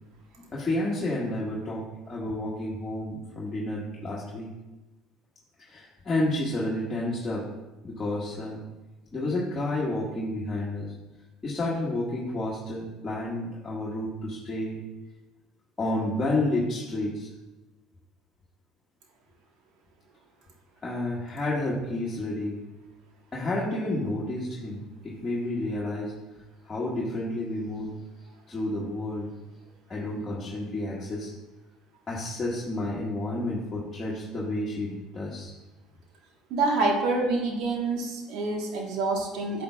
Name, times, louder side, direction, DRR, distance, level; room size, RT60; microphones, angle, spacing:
voice 1, 0.5-4.5 5.6-7.4 7.8-8.6 9.1-10.9 11.4-14.8 15.8-17.3 20.8-22.6 23.3-26.1 26.6-27.9 28.5-29.3 29.9-31.3 32.1-35.5, left 1 dB, 25° left, -7 dB, 1.7 m, -30 dB
voice 2, 36.5-39.6, right 3 dB, 65° right, 1 dB, 1.5 m, -27 dB
8.3 x 7.8 x 2.4 m, 1.1 s
hypercardioid pair, 65°, 0 cm